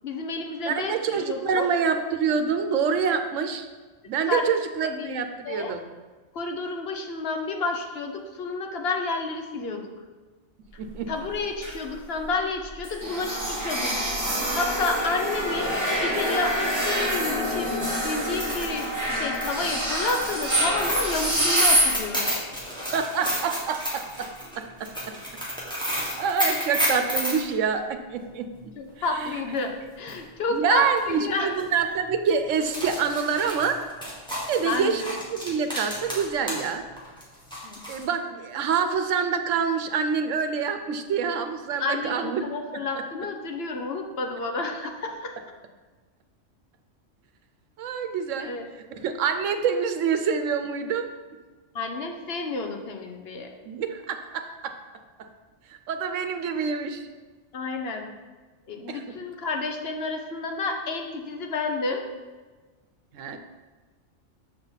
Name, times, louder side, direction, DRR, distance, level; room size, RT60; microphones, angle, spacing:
voice 1, 0.0-1.7 4.3-4.4 4.8-5.7 6.3-9.9 11.1-14.0 14.5-15.7 16.0-17.7 18.0-22.3 28.8-29.7 30.0-31.6 34.6-35.1 37.6-37.8 41.8-45.3 48.4-48.6 51.7-53.5 57.5-58.1 58.7-62.0, left 3 dB, 55° left, 3 dB, 1.0 m, -30 dB
voice 2, 0.7-3.7 4.1-5.8 10.8-11.1 22.9-24.3 24.6-25.2 25.8-28.5 29.1-29.4 30.5-33.8 34.3-36.8 37.9-42.4 47.8-48.6 48.9-51.1 53.7-54.8 55.7-57.0 58.9-59.0 63.1-63.4, right 6 dB, 80° right, 7 dB, 1.0 m, -26 dB
sound 1, 10.9-11.9 12.2-12.3 12.6-22.0, equal, 15° right, 1.8 m, -26 dB
sound 2, 18.3-27.4 29.6-29.7 30.1-30.2 31.0-31.2 31.5-31.6 32.5-36.7 37.0-38.0, equal, 5° left, 1.7 m, -31 dB
6.9 x 5.5 x 4.0 m, 1.3 s
omnidirectional pair, 1.3 m